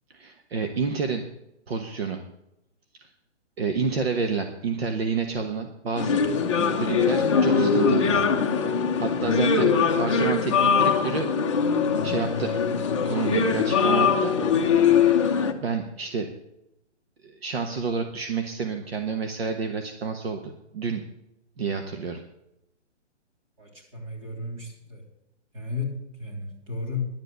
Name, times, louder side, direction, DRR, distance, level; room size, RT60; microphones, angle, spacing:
voice 1, 0.1-1.2 1.7-2.2 3.0-3.1 3.6-6.2 6.5-8.3 8.6-9.7 10.0-11.3 11.7-11.8 12.0-12.5 13.0-14.3 15.6-16.3 17.2-21.0 21.6-22.2, right 5 dB, 55° right, 6 dB, 1.2 m, -29 dB
sound 1, 6.0-15.5, left 6 dB, 25° left, 0.8 m, -22 dB
voice 2, 23.6-25.0 25.5-27.1, left 4 dB, 30° right, 0 dB, 3.6 m, -34 dB
11.0 x 8.0 x 8.0 m, 0.88 s
hypercardioid pair, 175°, 35 cm